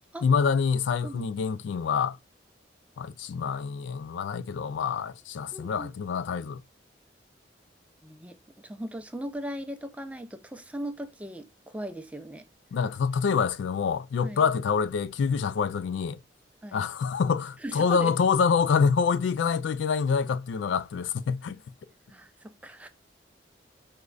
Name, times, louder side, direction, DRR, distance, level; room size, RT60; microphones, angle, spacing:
voice 1, 0.2-2.2 3.0-6.6 12.7-16.2 16.7-21.6, left 6 dB, 85° left, 0.3 m, -26 dB
voice 2, 5.5-5.9 8.0-8.4 8.6-12.4 14.2-14.5 16.6-16.8 17.6-18.1 22.1-22.9, right 1 dB, 10° right, 0.3 m, -38 dB
4.9 x 2.2 x 2.3 m
head